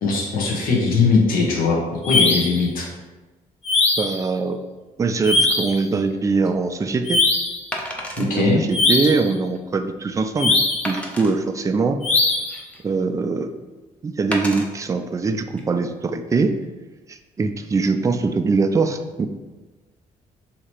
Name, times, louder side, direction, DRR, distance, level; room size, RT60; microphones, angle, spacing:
voice 1, 0.0-2.9 8.2-8.6, left 4 dB, 75° left, -1 dB, 1.0 m, -20 dB
sound 1, 2.0-2.6 3.6-4.2 5.2-5.8 7.1-7.6 8.7-9.3 10.4-10.9 12.0-12.6, left 3 dB, 45° left, 0.6 m, -20 dB
voice 2, 4.0-4.6 5.0-7.2 8.2-10.6 10.8-12.0 12.8-13.5 14.0-16.5 17.1-19.3, right 4 dB, 20° right, 7 dB, 0.3 m, -22 dB
Wood, 6.1-6.3 7.7-8.3 8.9-9.0 9.5-9.6 10.8-11.3 12.1-12.9 14.3-14.7 15.4-15.6, equal, 10° left, 0.7 m, -31 dB
2.8 x 2.8 x 4.5 m, 1.2 s
cardioid pair, 75°, 15 cm